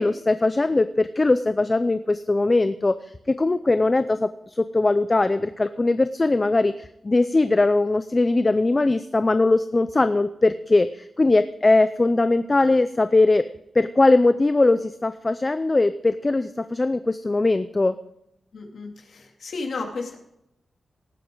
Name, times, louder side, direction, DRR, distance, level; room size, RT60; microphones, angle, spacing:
voice 1, 0.0-2.9 3.4-6.7 7.0-13.4 13.8-18.0, left 2 dB, 20° left, 11 dB, 0.5 m, -20 dB
voice 2, 18.5-20.2, left 3 dB, 65° left, 1 dB, 2.6 m, -33 dB
18.0 x 9.6 x 3.9 m, 0.79 s
wide cardioid pair, 165°, 0 cm